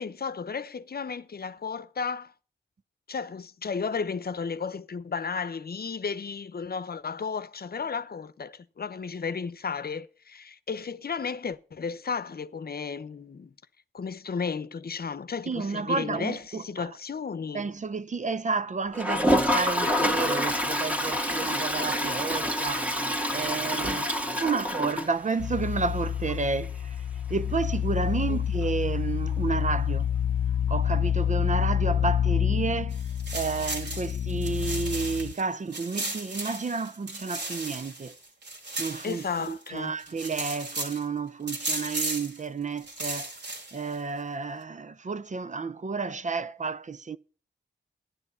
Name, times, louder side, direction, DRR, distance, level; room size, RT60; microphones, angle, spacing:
voice 1, 0.0-2.3 3.1-13.5 13.9-17.7 24.4-24.6 28.3-28.4 39.0-40.0, left 5 dB, 55° left, 0.8 m, -34 dB
voice 2, 15.5-16.9 17.5-23.0 23.3-27.0 27.3-30.1 30.7-33.0 33.3-38.2 38.8-43.3 43.7-47.2, right 4 dB, 40° right, 0.5 m, -31 dB
Toilet flush, 18.9-25.7 26.0-26.1 26.3-26.4 26.6-26.7 29.3-29.4 30.7-30.8, equal, 5° right, 1.8 m, -27 dB
sound 1, 25.4-35.3, left 9 dB, 85° left, 0.5 m, -28 dB
sound 2, 32.9-35.4 35.7-39.7 40.0-41.0 41.5-42.4 42.8-43.9, right 2 dB, 65° right, 3.5 m, -35 dB
12.0 x 10.5 x 5.6 m
cardioid pair, 60°, 19 cm